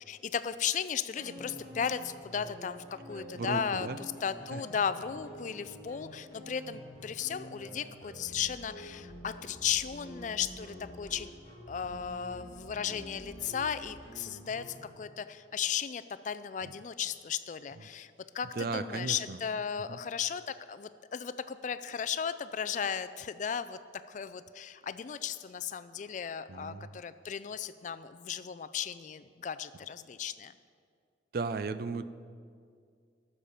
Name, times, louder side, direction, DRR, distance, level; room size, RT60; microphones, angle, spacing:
voice 1, 0.1-3.9 4.2-11.3 11.7-23.8 24.1-30.5, left 7 dB, 40° left, 12 dB, 0.3 m, -35 dB
sound 1, 1.2-14.9, equal, 25° left, 3.3 m, -48 dB
voice 2, 3.2-4.0 4.5-4.6 11.9-12.0 16.6-16.8 17.8-17.9 18.5-19.4 19.9-20.0 26.5-26.9 31.3-32.0, right 4 dB, 50° right, 13 dB, 0.4 m, -36 dB
13.5 x 6.8 x 5.6 m, 2.2 s
head